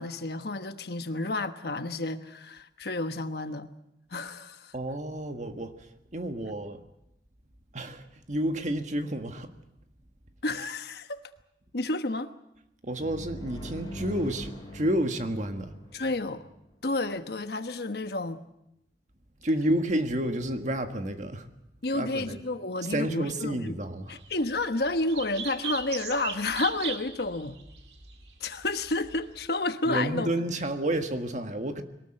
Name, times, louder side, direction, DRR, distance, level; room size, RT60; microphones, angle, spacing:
voice 1, 0.0-3.7 4.1-4.7 10.4-11.2 11.7-12.3 15.9-16.4 16.8-18.4 21.8-23.8 24.1-27.6 28.4-30.3, left 2 dB, 60° left, 1.2 m, -30 dB
voice 2, 4.7-5.9 6.1-6.8 7.7-9.5 12.8-15.7 19.4-21.5 21.9-22.4 22.9-24.2 29.9-31.8, right 1 dB, 45° right, 1.6 m, -30 dB
sound 1, 13.0-16.7, equal, 25° left, 5.5 m, -42 dB
sound 2, 24.2-29.5, right 7 dB, 65° right, 2.2 m, -39 dB
22.0 x 19.0 x 7.8 m
head